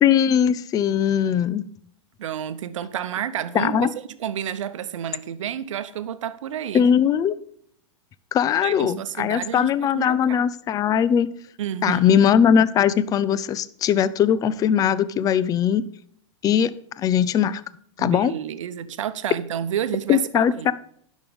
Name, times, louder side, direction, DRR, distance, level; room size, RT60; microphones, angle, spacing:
voice 1, 0.0-1.6 3.5-3.9 6.7-7.4 8.3-11.3 11.8-15.8 16.4-17.6 18.0-18.3 20.1-20.7, left 8 dB, 20° left, 0.4 m, -20 dB
voice 2, 2.2-3.9 4.2-6.8 8.6-10.4 11.6-12.2 18.0-20.7, right 9 dB, 80° right, 0.8 m, -30 dB
10.5 x 6.3 x 5.3 m
hypercardioid pair, 125°, 16 cm